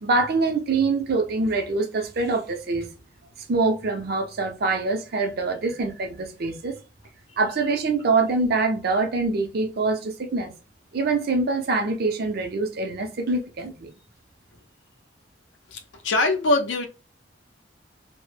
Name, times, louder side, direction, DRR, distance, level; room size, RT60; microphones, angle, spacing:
voice 1, 0.0-2.9 3.5-6.8 7.4-10.5 10.9-13.9, right 3 dB, 55° right, 0.5 m, -24 dB
voice 2, 15.7-16.9, left 2 dB, 80° left, 0.5 m, -23 dB
2.1 x 2.0 x 3.1 m
head